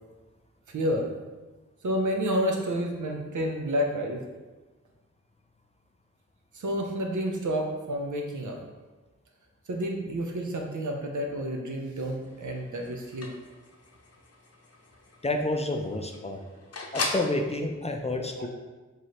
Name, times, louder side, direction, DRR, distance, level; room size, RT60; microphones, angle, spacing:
voice 1, 0.7-1.1 1.8-4.2 6.5-8.6 9.7-13.3 18.2-18.5, equal, 90° right, 1 dB, 0.7 m, -30 dB
sound 1, 12.2-17.4, left 3 dB, 55° left, 0.7 m, -39 dB
voice 2, 15.2-16.4 16.9-18.5, left 2 dB, 20° left, 3 dB, 0.4 m, -29 dB
4.7 x 3.1 x 2.9 m, 1.2 s
wide cardioid pair, 75°, 29 cm